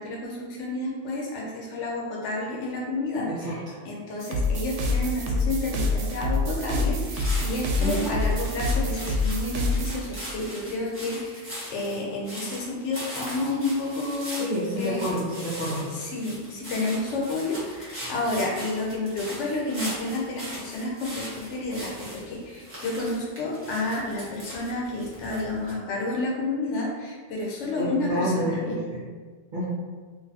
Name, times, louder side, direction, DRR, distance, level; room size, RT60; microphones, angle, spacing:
voice 1, 0.0-11.4 11.7-14.5 14.8-15.1 15.9-28.8, left 2 dB, 85° left, -2 dB, 1.0 m, -30 dB
voice 2, 3.3-3.7 7.8-8.1 14.3-15.9 27.8-29.0 29.5-29.6, equal, 45° right, -10 dB, 1.1 m, -29 dB
sound 1, 4.2-10.0, left 2 dB, 90° right, 0.9 m, -26 dB
sound 2, 7.0-25.7, equal, 10° right, 1.0 m, -40 dB
4.0 x 2.5 x 2.8 m, 1.5 s
omnidirectional pair, 1.2 m